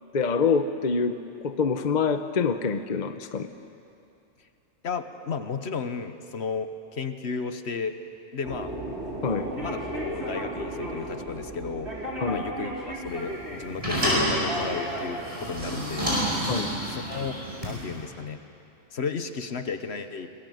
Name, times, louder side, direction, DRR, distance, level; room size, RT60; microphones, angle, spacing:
voice 1, 0.1-1.2 1.4-3.5 9.2-9.5 12.2-12.4 16.5-16.7, left 5 dB, 40° left, 9 dB, 0.9 m, -25 dB
voice 2, 4.8-8.0 8.3-8.7 9.5-11.9 12.3-16.2 16.9-18.4 18.9-20.3, left 5 dB, 60° left, 9 dB, 1.3 m, -33 dB
sound 1, 8.4-16.3, right 1 dB, 60° right, 4.1 m, -35 dB
sound 2, 13.1-18.0, equal, 25° right, 7.1 m, -29 dB
26.0 x 20.5 x 7.9 m, 2.6 s
omnidirectional pair, 1.3 m